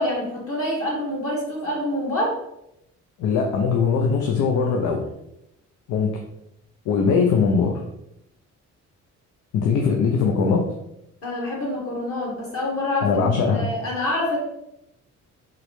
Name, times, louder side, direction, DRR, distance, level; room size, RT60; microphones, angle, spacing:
voice 1, 0.0-2.4 11.2-14.4, left 1 dB, 50° left, -2 dB, 1.1 m, -26 dB
voice 2, 3.2-5.1 5.9-6.1 6.9-7.8 9.5-10.6 13.0-13.7, left 5 dB, 80° left, 2 dB, 0.5 m, -21 dB
3.8 x 2.1 x 3.0 m, 0.83 s
cardioid pair, 90°, 30 cm